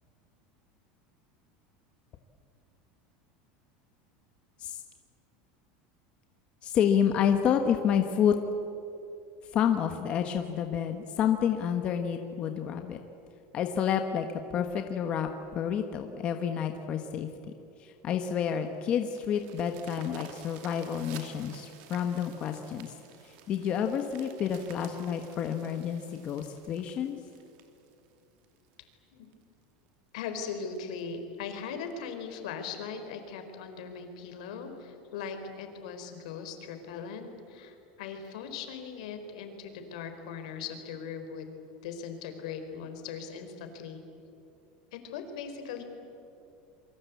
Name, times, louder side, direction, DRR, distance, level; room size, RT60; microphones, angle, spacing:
voice 1, 6.6-8.3 9.5-13.0 13.5-17.3 17.8-22.9 23.2-27.2, left 8 dB, 30° left, 6 dB, 1.3 m, -29 dB
sound 1, 18.3-28.7 29.3-29.4 29.9-30.0 30.3-30.4 30.8-31.0 31.9-32.0, right 8 dB, 50° right, 2.7 m, -52 dB
voice 2, 30.1-41.5 41.8-44.0 44.9-45.8, left 6 dB, 75° left, 6 dB, 4.4 m, -39 dB
28.0 x 24.0 x 8.4 m, 2.7 s
supercardioid pair, 170°, 4 cm